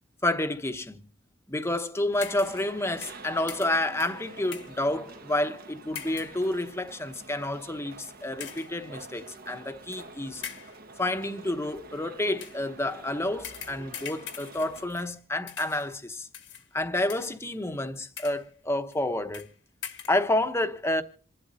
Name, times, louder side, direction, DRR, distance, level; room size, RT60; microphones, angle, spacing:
voice 1, 0.2-1.1 1.5-10.4 11.0-16.3 16.7-19.5 20.1-21.0, left 1 dB, 15° left, 1.0 m, -29 dB
sound 1, 2.1-14.9, right 3 dB, 55° right, 1.2 m, -47 dB
sound 2, 2.2-2.7 3.0-4.8 5.9-6.4 7.1-7.3 8.4-8.8 9.9-10.0 10.4-10.8 12.3-12.7 13.4-15.2 15.5-15.9 16.3-16.7 17.1-17.5 18.0-18.5 18.9-19.0 19.3-19.5 19.8-20.2, left 8 dB, 75° left, 1.4 m, -42 dB
27.5 x 11.5 x 2.7 m
head